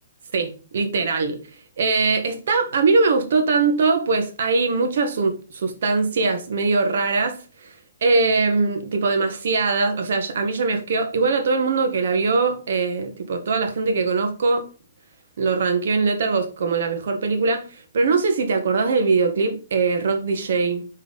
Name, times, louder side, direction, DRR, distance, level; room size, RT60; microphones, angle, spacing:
voice 1, 0.3-1.4 1.8-7.7 8.0-14.6 15.4-20.8, right 4 dB, 65° right, 1.5 m, -21 dB
5.6 x 4.5 x 4.0 m
hypercardioid pair, 150°, 0 cm